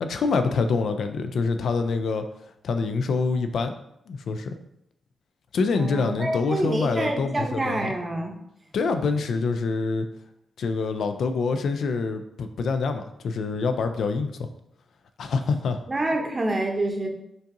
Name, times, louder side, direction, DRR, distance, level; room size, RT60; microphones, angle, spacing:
voice 1, 0.0-2.3 2.6-3.7 4.1-4.6 5.5-7.9 8.7-10.1 10.6-14.3 15.2-15.8, left 4 dB, 75° left, 8 dB, 0.3 m, -26 dB
voice 2, 5.7-8.3 15.9-17.1, right 1 dB, 25° right, 2 dB, 0.7 m, -27 dB
5.2 x 2.6 x 2.6 m, 0.80 s
cardioid pair, 90°, 0 cm